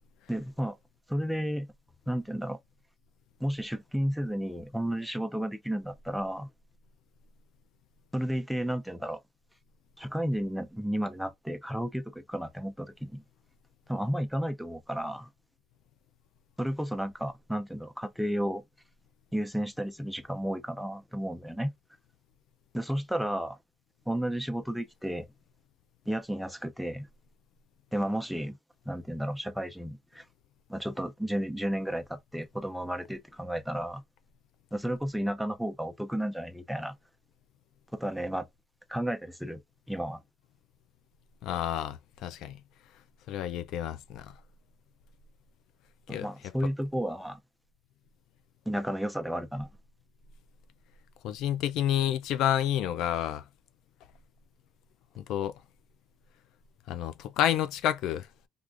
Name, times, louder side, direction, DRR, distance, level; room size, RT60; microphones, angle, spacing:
voice 1, 0.3-0.8 1.1-1.7 2.1-2.6 3.4-6.5 8.1-9.2 10.0-13.2 13.9-15.3 16.6-18.6 19.3-21.7 22.7-23.6 24.1-25.3 26.1-27.1 27.9-28.6 28.9-30.3 30.7-34.0 34.7-36.9 37.9-38.5 38.9-39.6 39.9-40.2 46.1-47.4 48.7-49.7, equal, ahead, 0.4 m, -32 dB
voice 2, 41.4-42.6 43.3-44.3 46.1-46.3 51.2-53.5 55.2-55.6 56.9-58.3, left 11 dB, 65° left, 0.4 m, -29 dB
3.4 x 2.4 x 2.5 m
cardioid pair, 150°, 0 cm